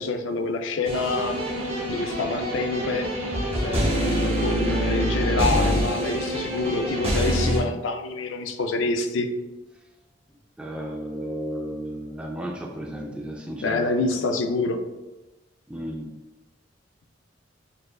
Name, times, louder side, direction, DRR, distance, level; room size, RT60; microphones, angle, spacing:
voice 1, 0.0-1.3 1.9-3.1 3.6-9.3 13.6-14.8, left 3 dB, 80° left, 6 dB, 0.4 m, -27 dB
sound 1, 0.8-7.6, equal, 30° right, 0.8 m, -25 dB
voice 2, 10.6-13.9 15.7-16.1, equal, 5° right, 0 dB, 0.3 m, -33 dB
6.4 x 2.4 x 2.2 m, 1.1 s
head